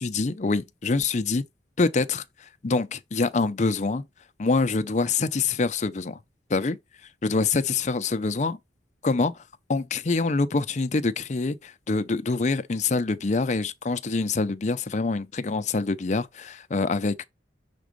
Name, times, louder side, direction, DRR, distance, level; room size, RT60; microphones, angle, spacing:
voice 1, 0.0-1.4 1.8-4.0 4.4-6.2 6.5-6.8 7.2-8.6 9.0-9.4 9.7-17.2, left 3 dB, 40° left, 0.5 m, -25 dB
6.0 x 3.6 x 5.2 m
head